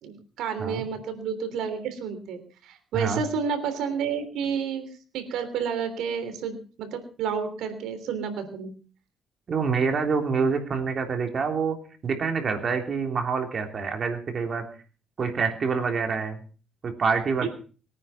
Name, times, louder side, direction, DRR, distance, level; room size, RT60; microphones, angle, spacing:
voice 1, 0.0-4.9 5.1-8.7 17.4-17.5, right 6 dB, 85° right, 9 dB, 3.3 m, -30 dB
voice 2, 9.5-11.8 12.0-14.6 15.2-16.4 16.8-17.5, right 5 dB, 50° right, 5 dB, 3.4 m, -26 dB
22.0 x 9.9 x 5.8 m, 0.39 s
cardioid pair, 90°, 0 cm